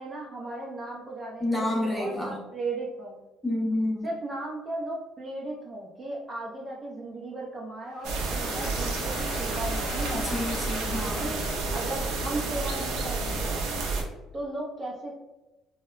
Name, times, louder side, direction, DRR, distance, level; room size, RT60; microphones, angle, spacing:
voice 1, 0.0-3.2 4.0-10.5 11.0-11.4 11.7-13.6 14.3-15.1, right 2 dB, 30° right, -3 dB, 0.4 m, -36 dB
voice 2, 1.4-2.3 3.4-4.1 10.2-11.3, left 1 dB, ahead, -4 dB, 0.7 m, -29 dB
Applause / Crowd, 7.9-12.8, left 2 dB, 85° left, 0.8 m, -42 dB
sound 1, 8.0-14.0, right 3 dB, 85° right, 0.5 m, -30 dB
2.7 x 2.1 x 2.3 m, 1.1 s
cardioid pair, 105°, 0 cm